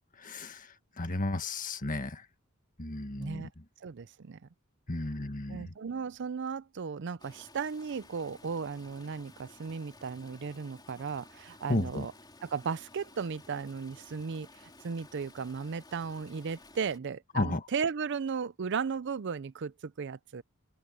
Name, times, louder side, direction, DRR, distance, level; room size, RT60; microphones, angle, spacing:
voice 1, 0.2-2.2 2.8-3.5 4.9-5.7 11.7-12.1 17.3-17.6, left 2 dB, 40° left, 1.6 m, -33 dB
voice 2, 3.2-3.5 3.8-4.4 5.5-12.1 12.4-20.4, right 5 dB, 60° right, 0.5 m, -36 dB
Stream, 7.2-17.0, left 2 dB, 20° left, 3.5 m, -55 dB
head